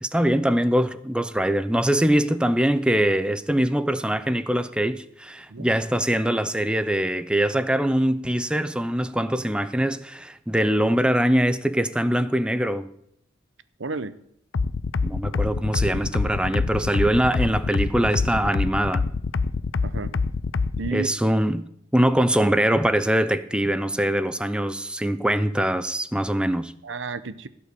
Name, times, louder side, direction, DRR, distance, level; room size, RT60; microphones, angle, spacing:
voice 1, 0.0-12.9 15.0-19.0 20.9-21.6 21.9-26.7, right 1 dB, 5° right, 0.6 m, -23 dB
voice 2, 13.8-14.2 19.8-20.1 20.8-21.1 26.8-27.5, right 4 dB, 70° right, 0.8 m, -31 dB
sound 1, 14.5-20.9, left 4 dB, 85° left, 0.6 m, -25 dB
16.0 x 5.6 x 8.3 m
head